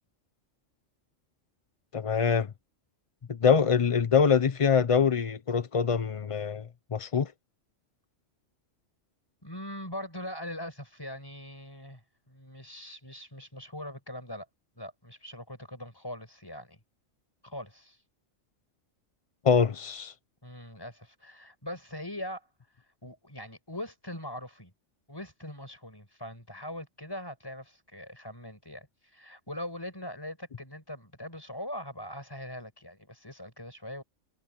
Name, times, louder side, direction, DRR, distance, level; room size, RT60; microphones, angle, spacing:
voice 1, 1.9-2.5 3.4-6.6 6.9-7.3 19.4-20.1, left 6 dB, 40° left, 0.5 m, -24 dB
voice 2, 9.4-12.0 12.3-14.5 14.8-16.8 17.4-18.0 20.4-22.5 23.0-24.7 25.1-28.9 29.1-34.0, left 1 dB, 15° left, 6.0 m, -41 dB
omnidirectional pair, 1.3 m